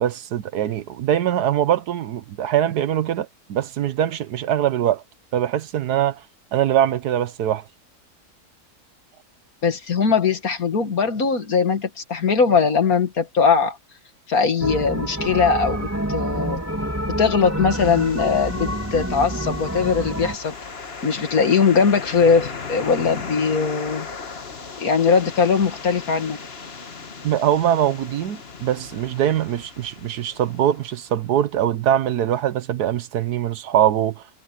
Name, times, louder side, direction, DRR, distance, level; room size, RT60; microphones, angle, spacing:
voice 1, 0.0-5.0 5.3-6.2 6.5-7.6 27.2-34.2, right 10 dB, 75° right, 1.4 m, -22 dB
voice 2, 9.6-13.8 14.3-16.6 17.2-20.6 21.0-24.1 24.8-26.4, left 5 dB, 60° left, 2.3 m, -20 dB
sound 1, 14.6-20.4, right 1 dB, 10° right, 3.0 m, -27 dB
sound 2, 17.7-31.6, left 4 dB, 40° left, 1.7 m, -37 dB
omnidirectional pair, 1.7 m